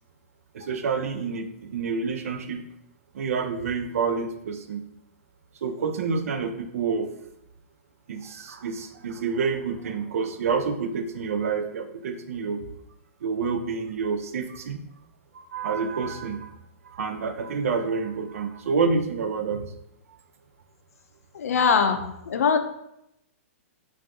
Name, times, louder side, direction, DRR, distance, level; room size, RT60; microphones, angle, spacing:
voice 1, 0.5-2.6 3.1-4.8 5.6-7.1 8.1-12.6 13.2-14.8 15.3-16.5 16.8-19.6, right 5 dB, 75° right, 7 dB, 0.4 m, -28 dB
voice 2, 21.3-22.6, left 6 dB, 80° left, 8 dB, 0.4 m, -22 dB
2.6 x 2.3 x 3.6 m, 0.80 s
hypercardioid pair, 165°, 8 cm